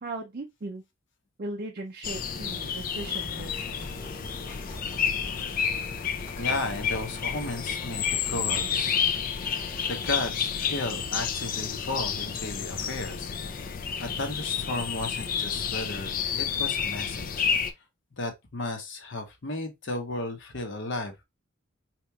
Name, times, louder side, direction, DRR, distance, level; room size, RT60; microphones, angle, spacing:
voice 1, 0.0-0.8 1.4-3.9, right 2 dB, 45° right, 0.5 m, -38 dB
sound 1, 2.0-17.7, left 7 dB, 40° left, 0.4 m, -30 dB
sound 2, 3.0-10.2, equal, 15° left, 1.2 m, -45 dB
voice 2, 6.3-9.0 9.9-17.5 18.2-21.2, left 2 dB, 60° left, 1.0 m, -34 dB
4.2 x 3.0 x 2.3 m
head